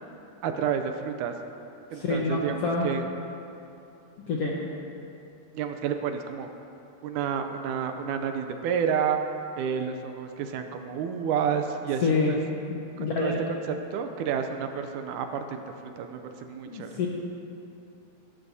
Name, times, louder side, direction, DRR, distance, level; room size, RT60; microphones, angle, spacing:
voice 1, 0.4-1.3 1.9-3.0 5.5-6.5 7.0-9.2 9.6-12.4 13.0-13.3 13.7-17.0, right 7 dB, 80° right, 6 dB, 1.9 m, -30 dB
voice 2, 1.9-2.9 4.3-4.6 12.0-12.4 12.7-13.4 16.7-17.1, left 3 dB, 70° left, -3 dB, 1.4 m, -27 dB
17.0 x 13.0 x 2.7 m, 2.7 s
omnidirectional pair, 4.0 m